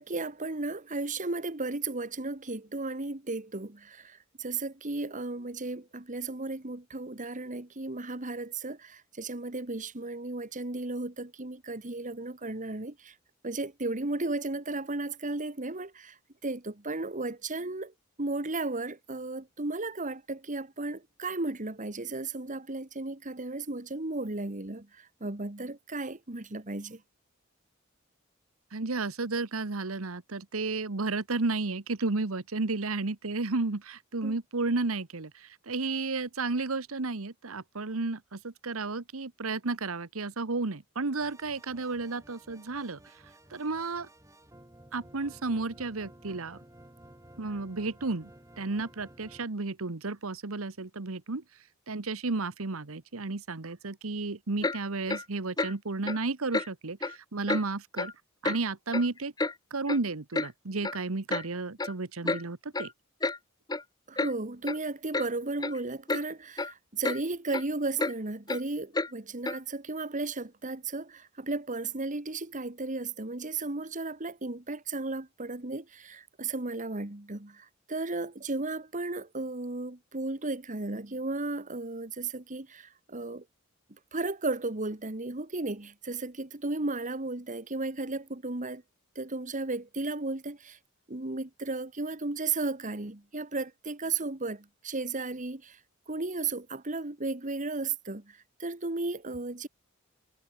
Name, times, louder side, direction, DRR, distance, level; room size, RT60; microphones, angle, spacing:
voice 1, 0.0-13.1 13.4-16.2 16.4-27.0 34.2-34.4 64.1-83.4 84.1-88.8 89.2-90.8 91.1-95.8 96.1-99.7, right 3 dB, 40° right, 1.9 m, -34 dB
voice 2, 28.7-43.0 43.5-44.1 44.9-46.6 47.4-48.3 48.6-51.4 51.9-58.1 58.4-59.3 59.7-62.9, right 3 dB, 80° right, 1.2 m, -32 dB
sound 1, 41.2-49.5, right 1 dB, 15° right, 6.7 m, -54 dB
Clock, 54.6-54.8 55.1-55.2 55.6-55.7 56.1-56.2 56.5-56.7 57.0-57.2 57.5-57.6 58.0-58.1 58.5-58.6 58.9-59.5 59.9-60.0 60.3-60.5 60.8-61.0 61.3-61.5 61.8-61.9 62.3-62.4 62.7-62.9 63.2-63.4 63.7-63.8 64.2-64.3 64.7-64.8 65.1-65.3 65.6-65.8 66.1-66.2 66.6-66.7 67.0-67.2 67.5-67.6 68.0-68.1 68.5-68.6 68.9-69.1 69.5-69.6, left 3 dB, 20° left, 1.0 m, -30 dB
head